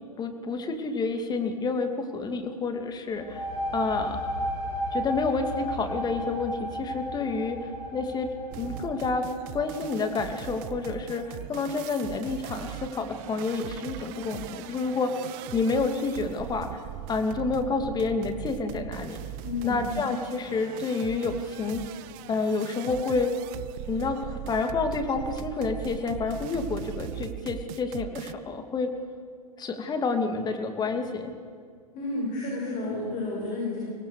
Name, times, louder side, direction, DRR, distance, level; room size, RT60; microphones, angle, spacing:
voice 1, 0.2-3.5 3.7-4.2 4.9-7.6 7.9-9.3 9.5-15.1 15.5-16.8 17.1-19.2 19.6-21.8 22.3-23.3 23.9-28.9 29.6-31.3, left 4 dB, 20° left, 6 dB, 2.5 m, -29 dB
sound 1, 3.1-10.6, equal, 85° left, 7.4 m, -34 dB
sound 2, 8.5-28.3, right 13 dB, 40° right, 0.8 m, -40 dB
voice 2, 19.4-19.9 31.9-33.8, left 2 dB, 40° left, -3 dB, 7.3 m, -31 dB
24.5 x 19.0 x 6.7 m, 2.3 s
hypercardioid pair, 105°, 20 cm